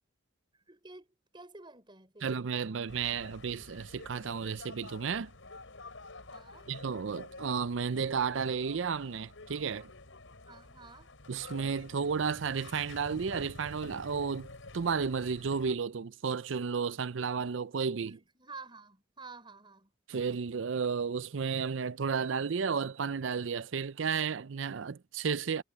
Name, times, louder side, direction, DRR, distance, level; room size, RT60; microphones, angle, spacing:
voice 1, 0.5-2.3 6.3-6.7 10.5-11.1 18.0-19.9, right 3 dB, 25° right, 6.4 m, -51 dB
voice 2, 2.2-5.3 6.7-9.9 11.3-14.5 14.7-18.2 20.1-25.6, right 6 dB, 70° right, 0.5 m, -33 dB
sound 1, 2.9-15.8, left 2 dB, 75° left, 4.6 m, -49 dB
head